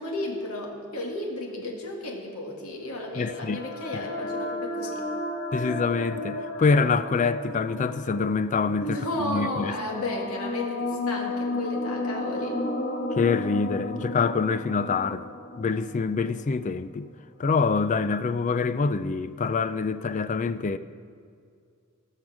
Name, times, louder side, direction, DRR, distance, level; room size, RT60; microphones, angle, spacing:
voice 1, 0.0-5.1 8.8-12.6, left 1 dB, 75° left, 2.1 m, -33 dB
sound 1, 3.0-16.6, left 2 dB, 50° left, 1.8 m, -33 dB
voice 2, 3.1-3.6 5.5-9.8 13.1-15.3 15.6-17.1 17.4-20.8, left 4 dB, 35° left, 0.4 m, -25 dB
15.5 x 6.5 x 6.2 m
head